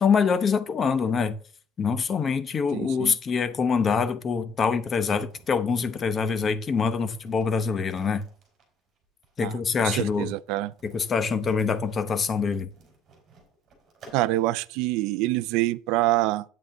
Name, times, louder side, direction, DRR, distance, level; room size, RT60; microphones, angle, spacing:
voice 1, 0.0-1.4 1.8-8.2 9.4-10.3 10.8-12.7, left 5 dB, 25° left, 0.8 m, -25 dB
voice 2, 2.7-3.1 9.4-9.5 9.8-10.7 14.1-16.4, right 17 dB, 65° right, 0.4 m, -25 dB
sound 1, 5.3-14.6, right 4 dB, 30° right, 4.6 m, -54 dB
9.2 x 8.2 x 3.7 m
cardioid pair, 160°, 0 cm